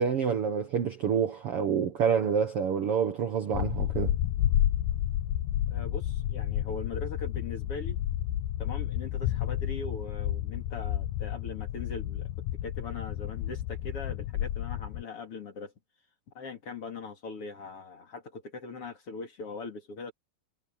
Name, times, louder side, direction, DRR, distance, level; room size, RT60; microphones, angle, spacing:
voice 1, 0.0-4.1, right 7 dB, 85° right, 1.2 m, -27 dB
sound 1, 3.5-15.0, left 12 dB, 75° left, 2.0 m, -31 dB
voice 2, 5.7-8.0 8.6-15.7 16.3-20.1, left 3 dB, 40° left, 2.9 m, -41 dB
omnidirectional pair, 4.6 m